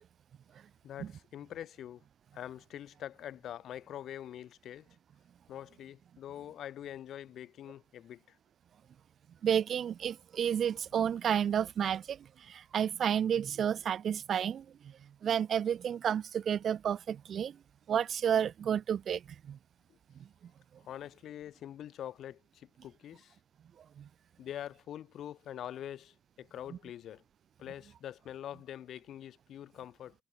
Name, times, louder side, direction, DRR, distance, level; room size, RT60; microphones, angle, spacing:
voice 1, 0.8-2.0 2.3-4.9 5.5-8.4 20.8-23.4 24.4-27.2 27.6-30.1, left 11 dB, 65° left, 5.5 m, -44 dB
voice 2, 9.4-12.2 12.5-14.6 15.2-17.6 17.9-19.2 19.5-19.6 24.0-24.1 26.7-26.8, right 8 dB, 60° right, 2.2 m, -31 dB
hypercardioid pair, 40°, 0 cm